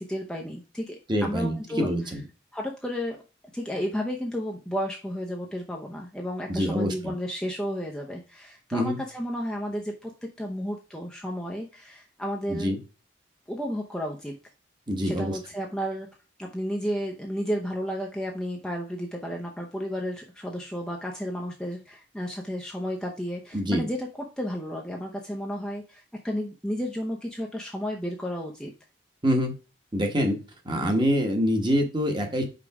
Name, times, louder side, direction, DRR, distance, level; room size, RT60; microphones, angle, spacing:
voice 1, 0.0-2.1 2.5-3.2 3.5-12.7 13.5-14.4 15.0-16.1 16.4-28.7, equal, 5° left, -1 dB, 0.7 m, -32 dB
voice 2, 1.1-2.2 6.5-7.1 8.7-9.0 12.5-12.8 14.9-15.4 23.5-23.8 29.2-29.5 29.9-30.4 30.6-32.4, equal, 25° right, 3 dB, 1.3 m, -25 dB
5.2 x 4.7 x 4.8 m, 0.32 s
head